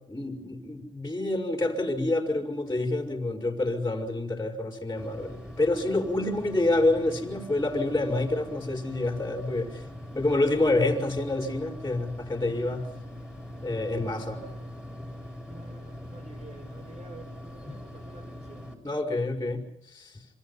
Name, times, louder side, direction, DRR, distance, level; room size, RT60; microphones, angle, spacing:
voice 1, 0.1-9.9 10.1-12.9 13.6-14.4 15.0-15.1 18.8-19.6 19.9-20.2, left 2 dB, 15° left, 2 dB, 5.1 m, -27 dB
sound 1, 5.0-18.7, left 1 dB, 5° right, 7.8 m, -42 dB
voice 2, 14.0-14.7 15.5-18.7, right 2 dB, 35° right, 6 dB, 6.9 m, -50 dB
27.0 x 25.5 x 5.6 m, 0.75 s
cardioid pair, 90°, 20 cm